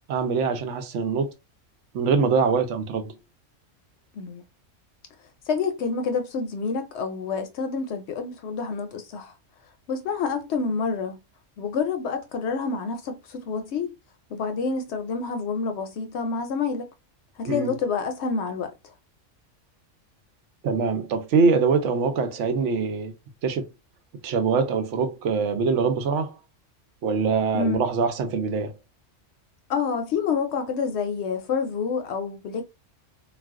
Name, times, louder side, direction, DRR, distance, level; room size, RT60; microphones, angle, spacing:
voice 1, 0.1-1.3 1.9-3.1 17.5-17.7 20.6-23.1 23.4-23.6 24.2-26.4 27.0-28.7, right 5 dB, 70° right, 0.9 m, -23 dB
voice 2, 5.5-9.3 9.9-11.2 11.6-14.0 14.3-16.9 17.4-18.7 27.5-27.8 29.7-32.6, left 5 dB, 70° left, 0.8 m, -28 dB
2.4 x 2.3 x 3.5 m
omnidirectional pair, 1.3 m